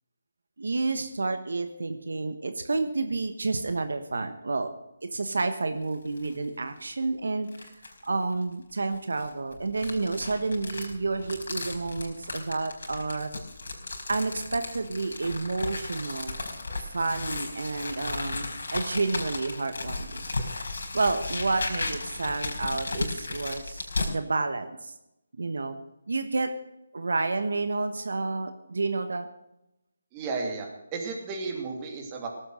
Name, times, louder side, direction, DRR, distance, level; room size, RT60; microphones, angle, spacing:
voice 1, 0.6-4.7 5.1-7.7 8.0-13.3 14.1-16.4 16.9-20.2 20.9-24.9 25.4-25.7 26.1-26.5 26.9-29.3, right 3 dB, 75° right, 8 dB, 1.3 m, -30 dB
sound 1, 5.8-6.4 6.8-6.9 7.5-8.1 8.9-24.1, left 3 dB, 70° left, 4.8 m, -35 dB
voice 2, 30.1-32.3, right 4 dB, 20° right, 1 dB, 2.7 m, -33 dB
17.5 x 8.0 x 6.4 m, 0.87 s
figure-of-eight pair, 155°, 0 cm